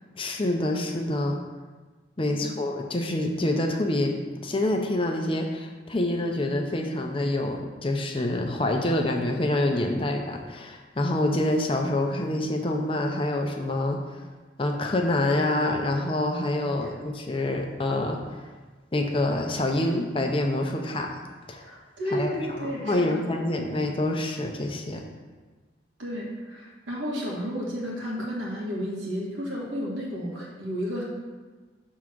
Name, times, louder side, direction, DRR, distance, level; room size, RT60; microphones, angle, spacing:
voice 1, 0.2-1.4 2.2-14.0 14.6-18.2 18.9-21.1 21.5-21.6 22.1-25.0, left 1 dB, 30° left, 2 dB, 0.6 m, -26 dB
voice 2, 21.6-23.2 26.0-31.0, equal, 85° right, -3 dB, 1.7 m, -32 dB
6.3 x 3.6 x 6.0 m, 1.3 s
head